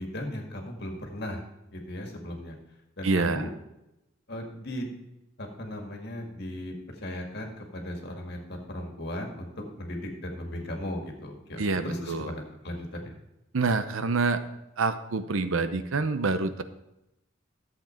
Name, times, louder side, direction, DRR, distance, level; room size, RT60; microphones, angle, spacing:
voice 1, 0.0-1.4 1.7-2.5 3.0-3.5 4.3-4.9 5.4-6.7 7.0-13.1, left 1 dB, 55° left, 2 dB, 2.0 m, -37 dB
voice 2, 3.0-3.5 11.6-12.3 13.5-14.4 14.8-16.6, right 3 dB, 80° right, 10 dB, 0.7 m, -27 dB
12.0 x 7.8 x 4.4 m, 0.91 s
head